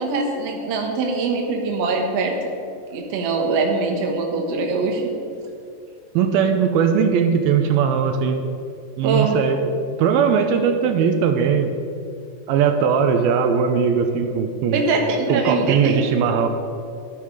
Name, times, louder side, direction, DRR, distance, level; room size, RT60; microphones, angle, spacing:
voice 1, 0.0-2.5 2.9-5.1 9.0-9.4 14.7-16.0, right 3 dB, 55° right, 1 dB, 2.2 m, -22 dB
voice 2, 6.1-8.4 9.0-9.6 10.0-11.7 12.5-14.8 15.3-16.5, right 7 dB, 85° right, 6 dB, 2.6 m, -19 dB
14.0 x 9.5 x 4.8 m, 2.4 s
omnidirectional pair, 4.3 m